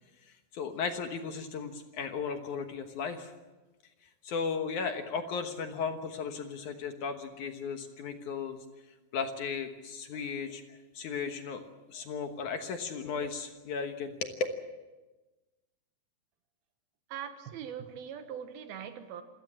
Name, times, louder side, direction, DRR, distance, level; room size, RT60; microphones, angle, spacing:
voice 1, 0.5-3.3 4.2-8.6 9.1-11.6 11.9-14.3, left 5 dB, 60° left, 6 dB, 2.3 m, -36 dB
voice 2, 17.1-19.2, right 8 dB, 75° right, 8 dB, 3.1 m, -41 dB
27.0 x 17.0 x 7.5 m, 1.2 s
omnidirectional pair, 4.5 m